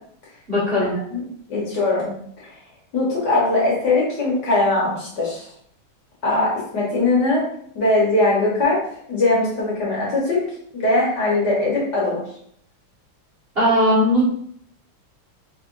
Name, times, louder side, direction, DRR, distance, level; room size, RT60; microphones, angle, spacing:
voice 1, 0.5-0.9 13.5-14.2, equal, 30° right, -9 dB, 1.4 m, -18 dB
voice 2, 1.5-2.1 2.4-2.5 2.9-5.4 6.2-7.5 7.7-8.8 9.1-10.4 10.7-12.2, left 2 dB, 55° left, -5 dB, 1.6 m, -20 dB
4.3 x 3.3 x 2.5 m, 0.66 s
omnidirectional pair, 2.4 m